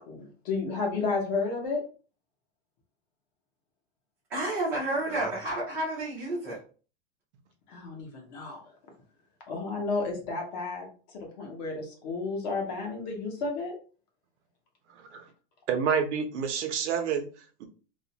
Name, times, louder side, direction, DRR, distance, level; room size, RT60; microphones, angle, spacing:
voice 1, 0.1-1.8 7.7-8.6 9.5-13.7, left 4 dB, 40° left, 0.7 m, -32 dB
voice 2, 4.3-6.6, right 1 dB, 5° right, 0.4 m, -30 dB
voice 3, 14.9-15.3 15.7-17.6, right 6 dB, 80° right, 0.7 m, -29 dB
2.4 x 2.1 x 2.8 m
supercardioid pair, 180°, 34 cm